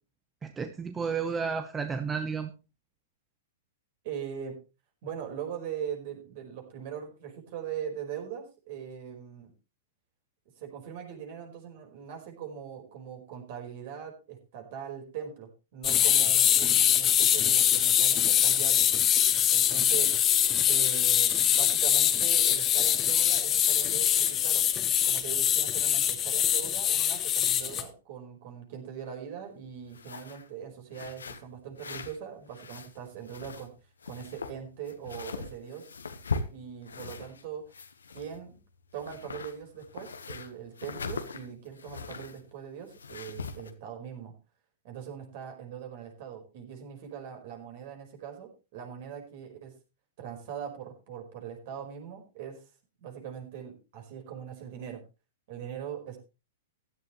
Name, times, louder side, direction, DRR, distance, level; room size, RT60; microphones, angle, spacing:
voice 1, 0.4-2.5, right 5 dB, 15° right, 8 dB, 1.0 m, -32 dB
voice 2, 4.0-4.6 5.0-9.5 10.6-18.9 19.5-20.2 20.7-24.6 25.0-33.7 34.1-35.9 36.5-37.7 38.1-38.6 38.9-44.3 44.8-49.7 50.2-52.6 53.0-55.0 55.5-56.2, right 8 dB, 50° right, 3 dB, 5.0 m, -41 dB
sound 1, 15.8-27.8, left 10 dB, 25° left, 1.5 m, -24 dB
sound 2, 29.9-30.5 30.9-32.2 32.5-33.7 34.0-37.4 37.7-38.6 38.9-42.4 42.9-43.7, left 4 dB, 75° left, 1.4 m, -40 dB
15.5 x 11.5 x 3.3 m, 0.31 s
figure-of-eight pair, 105°, 0 cm